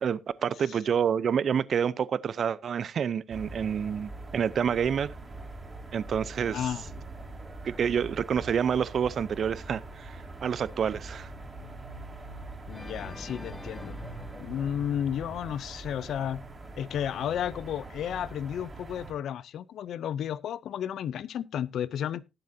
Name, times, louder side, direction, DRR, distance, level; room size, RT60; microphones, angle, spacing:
voice 1, 0.0-5.1 5.9-6.6 7.6-11.3, right 7 dB, 50° right, 0.6 m, -28 dB
sound 1, 3.3-19.1, right 2 dB, 20° right, 3.2 m, -43 dB
voice 2, 6.5-6.9 12.7-14.0 14.4-16.4 16.8-22.2, left 9 dB, 65° left, 0.5 m, -32 dB
Organ, 12.7-15.8, left 1 dB, 10° left, 1.4 m, -46 dB
19.0 x 7.7 x 2.7 m
cardioid pair, 125°, 0 cm